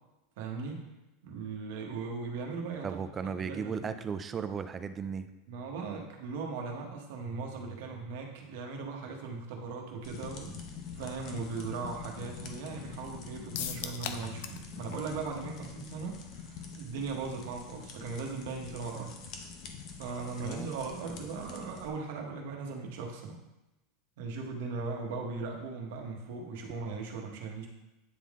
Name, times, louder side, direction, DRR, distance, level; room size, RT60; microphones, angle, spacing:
voice 1, 0.4-0.8 1.2-3.0 3.4-3.9 5.5-10.6 10.9-19.1 20.0-23.4 24.2-27.7, right 4 dB, 65° right, 1 dB, 1.3 m, -38 dB
voice 2, 2.8-5.3 20.4-20.7, right 6 dB, 20° right, 10 dB, 0.3 m, -36 dB
sound 1, 10.0-21.9, left 6 dB, 40° left, 0.8 m, -45 dB
sound 2, 13.5-14.7 14.9-15.0 15.4-15.5, left 9 dB, 65° left, 0.5 m, -37 dB
9.3 x 3.7 x 3.6 m, 0.98 s
supercardioid pair, 160°, 0 cm